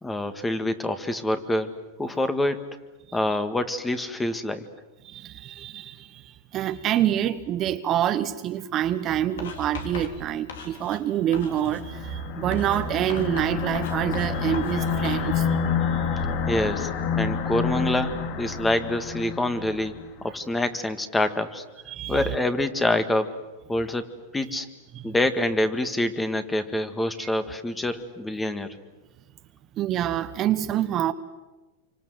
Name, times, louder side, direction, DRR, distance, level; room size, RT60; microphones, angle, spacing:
voice 1, 0.0-1.7 2.0-2.6 3.1-4.6 16.5-21.6 22.1-23.4 23.7-24.1 24.3-24.7 25.0-28.8, left 1 dB, 10° left, 10 dB, 1.8 m, -26 dB
voice 2, 5.0-15.6 15.9-16.3 21.9-22.3 24.9-25.0 27.2-27.3 29.8-31.1, right 11 dB, 35° right, 10 dB, 1.2 m, -27 dB
Writing, 9.4-11.1 11.3-11.9 12.5-15.3, left 5 dB, 80° left, 4.1 m, -38 dB
sound 1, 11.5-20.1, left 6 dB, 50° left, 2.3 m, -28 dB
27.5 x 25.5 x 8.0 m, 1.1 s
hypercardioid pair, 120°, 0 cm